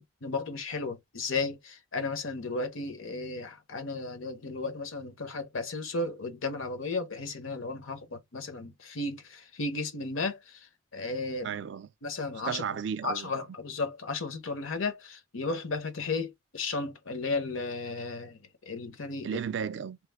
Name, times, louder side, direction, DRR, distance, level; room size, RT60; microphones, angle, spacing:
voice 1, 0.0-11.5 12.0-12.6 13.0-18.4 18.7-19.4, left 3 dB, 85° left, 0.9 m, -34 dB
voice 2, 11.4-11.9 12.4-13.5 19.2-20.0, right 7 dB, 60° right, 0.3 m, -34 dB
3.1 x 2.1 x 3.4 m
head